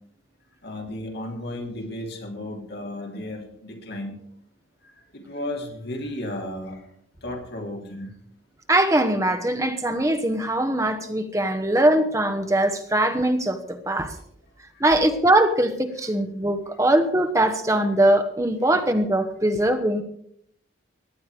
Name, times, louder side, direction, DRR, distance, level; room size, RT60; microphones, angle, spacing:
voice 1, 0.6-4.2 4.8-6.8 7.2-8.1 14.7-14.8, left 1 dB, 50° left, 1 dB, 3.4 m, -34 dB
voice 2, 8.7-14.1 14.8-20.0, right 1 dB, 15° right, 7 dB, 1.2 m, -21 dB
17.5 x 11.0 x 4.9 m, 0.68 s
head